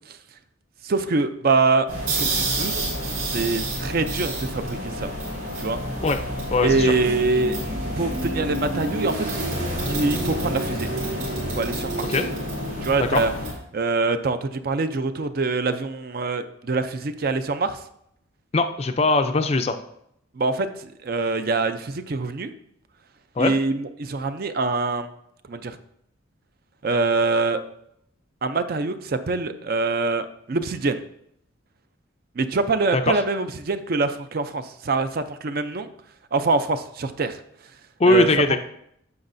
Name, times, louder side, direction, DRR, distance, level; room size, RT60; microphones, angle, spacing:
voice 1, 0.8-1.9 2.2-2.7 3.2-5.1 5.6-5.8 6.6-7.6 8.0-9.3 9.9-10.9 11.5-12.1 12.8-13.3 13.7-17.8 20.3-22.5 23.4-25.1 25.5-25.8 26.8-27.6 28.4-31.0 32.4-35.9 36.3-37.4 38.1-38.3, right 3 dB, 45° right, 10 dB, 0.4 m, -24 dB
sound 1, 1.9-13.5, right 1 dB, 75° right, 3.4 m, -28 dB
voice 2, 6.5-6.9 12.1-12.3 13.0-13.2 18.5-19.8 23.4-23.5 32.9-33.2 38.0-38.6, left 2 dB, 30° left, 8 dB, 0.4 m, -20 dB
9.5 x 6.9 x 2.6 m, 0.74 s
head